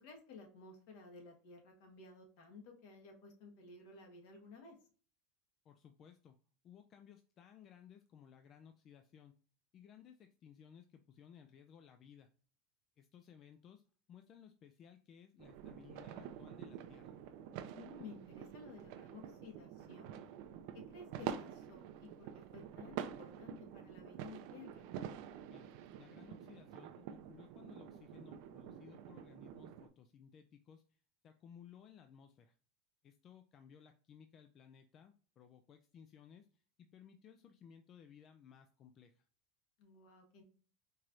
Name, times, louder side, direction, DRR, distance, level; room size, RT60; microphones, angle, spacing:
voice 1, 0.0-4.7 17.7-20.2 20.9-24.8 39.8-40.4, left 4 dB, 60° left, 2 dB, 1.4 m, -55 dB
voice 2, 5.6-6.4 6.6-9.3 9.7-12.3 13.0-17.2 25.5-32.6 33.0-39.3, left 8 dB, 30° left, 6 dB, 0.3 m, -60 dB
sound 1, 15.4-29.9, right 9 dB, 60° right, 0.5 m, -48 dB
4.5 x 3.0 x 2.5 m, 0.41 s
supercardioid pair, 155°, 0 cm